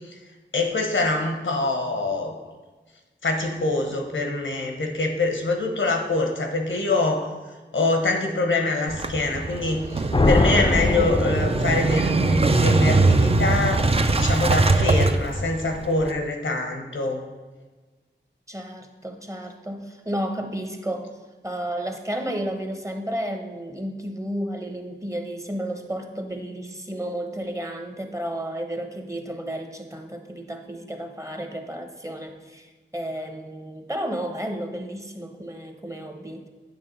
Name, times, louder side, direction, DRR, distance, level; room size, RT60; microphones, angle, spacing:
voice 1, 0.5-2.3 3.2-7.3 7.7-13.8 14.2-17.2, left 2 dB, 90° left, 3 dB, 1.1 m, -24 dB
Motorcycle / Engine starting, 8.9-16.1, right 3 dB, 30° right, 0.5 m, -22 dB
sound 1, 10.1-12.1, left 2 dB, 25° left, 0.5 m, -22 dB
voice 2, 10.7-11.2 18.5-21.1 21.4-36.5, right 1 dB, 15° right, 4 dB, 0.9 m, -32 dB
8.8 x 3.4 x 5.4 m, 1.3 s
wide cardioid pair, 55°, 19 cm